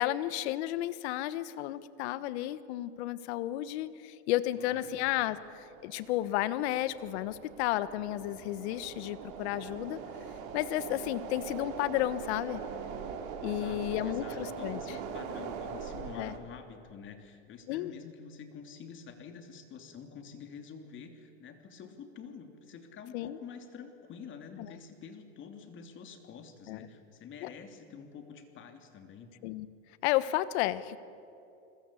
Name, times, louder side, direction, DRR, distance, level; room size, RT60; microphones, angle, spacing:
voice 1, 0.0-10.0 10.5-12.6 13.4-14.8 16.2-16.3 17.7-17.9 23.1-23.4 24.6-24.7 26.7-26.9 27.4-27.5 29.4-29.7 30.0-31.0, left 14 dB, 70° left, 15 dB, 1.4 m, -32 dB
voice 2, 4.5-5.0 13.4-29.3, left 6 dB, 35° left, 6 dB, 3.0 m, -48 dB
sound 1, 4.9-16.4, right 6 dB, 55° right, 3.6 m, -42 dB
29.5 x 21.0 x 8.5 m, 2.7 s
supercardioid pair, 140°, 34 cm